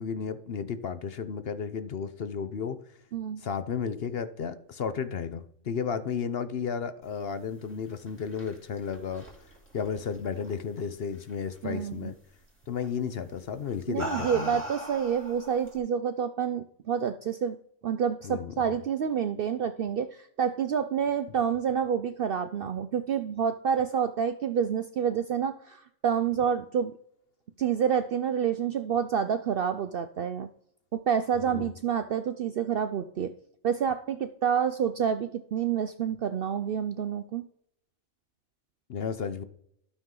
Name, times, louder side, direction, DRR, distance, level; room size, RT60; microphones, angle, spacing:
voice 1, 0.0-2.8 3.4-9.2 9.7-12.1 12.7-14.6 18.2-18.5 31.4-31.7 38.9-39.4, left 6 dB, 55° left, 11 dB, 0.8 m, -33 dB
sound 1, 7.9-10.8 11.1-11.6 12.8-13.0 13.7-15.8, equal, 10° left, 2.7 m, -40 dB
voice 2, 11.6-12.1 13.9-17.6 17.8-26.9 27.6-30.5 30.9-33.3 33.6-37.4, right 7 dB, 60° right, 10 dB, 0.6 m, -28 dB
12.0 x 6.4 x 3.8 m, 0.72 s
omnidirectional pair, 1.4 m